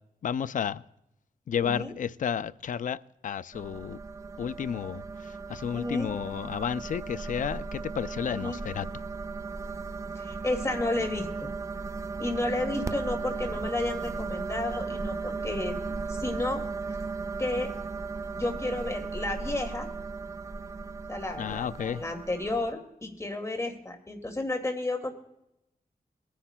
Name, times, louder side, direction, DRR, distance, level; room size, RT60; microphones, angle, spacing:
voice 1, 0.2-0.8 1.5-3.0 3.2-4.0 4.4-5.0 5.5-8.8 21.4-22.0, left 8 dB, 60° left, 0.4 m, -31 dB
voice 2, 1.6-1.9 5.7-6.1 8.3-8.6 10.2-11.5 12.2-16.6 17.4-17.7 18.3-19.9 21.1-25.1, left 2 dB, 20° left, 2.1 m, -32 dB
sound 1, 3.5-22.7, right 4 dB, 20° right, 0.4 m, -36 dB
23.0 x 10.0 x 2.2 m
wide cardioid pair, 115°, 15 cm